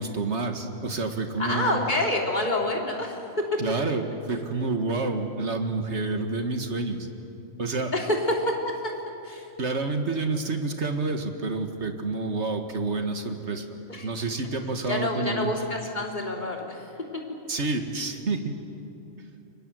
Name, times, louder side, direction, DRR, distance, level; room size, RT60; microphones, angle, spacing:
voice 1, 0.0-1.8 3.6-7.1 7.6-7.9 9.6-13.7 14.0-15.5 17.5-18.6, right 3 dB, 55° right, 6 dB, 2.0 m, -28 dB
voice 2, 1.4-3.6 7.9-8.9 9.2-9.5 13.9-14.1 14.9-17.2, left 1 dB, 35° left, 0 dB, 3.5 m, -28 dB
29.5 x 24.5 x 7.9 m, 3.0 s
omnidirectional pair, 1.4 m